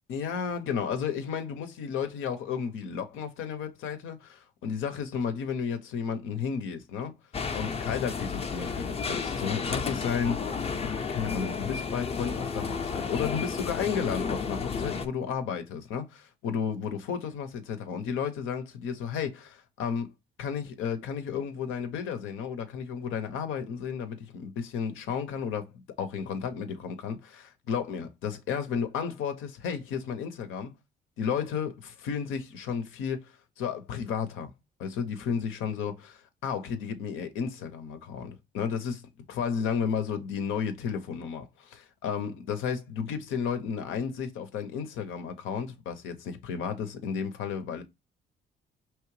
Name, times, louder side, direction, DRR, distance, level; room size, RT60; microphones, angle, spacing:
voice 1, 0.1-7.1 7.5-10.6 10.8-20.1 20.4-30.7 31.2-34.5 34.8-39.0 39.3-47.8, left 7 dB, 90° left, 0.7 m, -33 dB
sound 1, 7.3-15.1, left 5 dB, 30° left, 0.5 m, -32 dB
4.7 x 3.1 x 3.1 m
cardioid pair, 90°, 20 cm